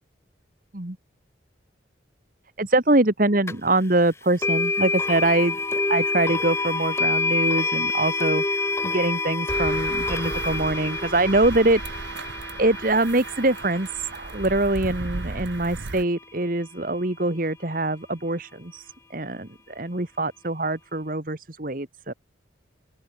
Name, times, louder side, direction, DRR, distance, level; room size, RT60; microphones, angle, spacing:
voice 1, 2.6-5.6 5.9-8.4 8.8-11.8 12.6-22.1, right 2 dB, 45° right, 1.7 m, -24 dB
sound 1, 3.5-3.6 4.4-15.4, left 3 dB, 15° left, 0.3 m, -27 dB
sound 2, 9.5-16.0, right 3 dB, 70° right, 1.0 m, -35 dB
open air
head